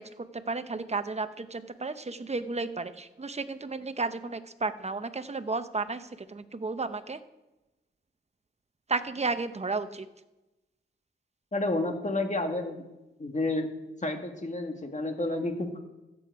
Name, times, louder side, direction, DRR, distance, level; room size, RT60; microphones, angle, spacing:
voice 1, 0.0-7.2 8.9-10.1, right 3 dB, 35° right, 11 dB, 0.9 m, -33 dB
voice 2, 11.5-12.8 13.2-13.7 14.0-15.8, left 2 dB, 40° left, 5 dB, 1.8 m, -30 dB
14.5 x 7.8 x 4.7 m, 1.0 s
cardioid pair, 60°, 20 cm